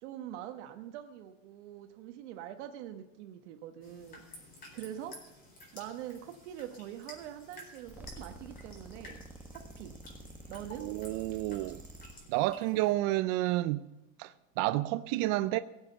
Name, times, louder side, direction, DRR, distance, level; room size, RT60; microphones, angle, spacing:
voice 1, 0.0-4.2 4.7-5.2 5.7-9.9 10.5-10.9, right 11 dB, 65° right, 1.3 m, -44 dB
sound 1, 3.8-12.9, left 1 dB, 20° left, 4.3 m, -53 dB
sound 2, 7.8-12.2, right 1 dB, 5° right, 1.2 m, -49 dB
voice 2, 10.8-11.8 12.3-13.8 14.2-15.6, right 17 dB, 40° right, 0.4 m, -30 dB
18.5 x 7.5 x 6.8 m
supercardioid pair, 150°, 38 cm